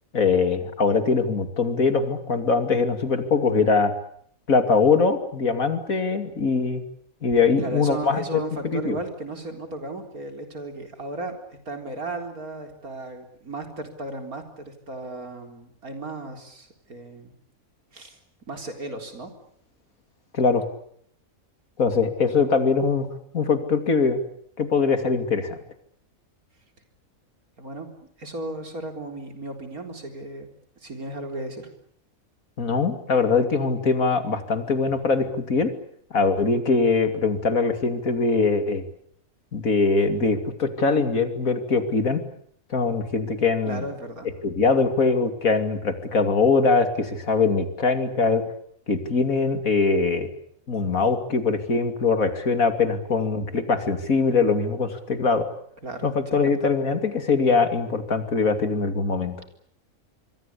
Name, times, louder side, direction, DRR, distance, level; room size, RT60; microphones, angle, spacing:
voice 1, 0.1-3.9 4.5-6.8 7.2-9.0 20.3-20.6 21.8-23.1 23.3-24.2 24.6-25.6 32.6-35.7 36.1-38.8 39.5-42.2 42.7-43.8 44.4-48.4 48.9-50.3 50.7-55.5 56.0-59.4, left 4 dB, 70° left, 8 dB, 3.0 m, -22 dB
voice 2, 7.6-11.3 11.7-17.3 17.9-18.2 18.5-19.3 27.6-27.9 28.2-30.5 30.8-31.7 43.6-44.3 55.8-56.5, right 2 dB, 85° right, 5 dB, 4.4 m, -35 dB
27.0 x 23.0 x 8.5 m, 0.67 s
omnidirectional pair, 1.5 m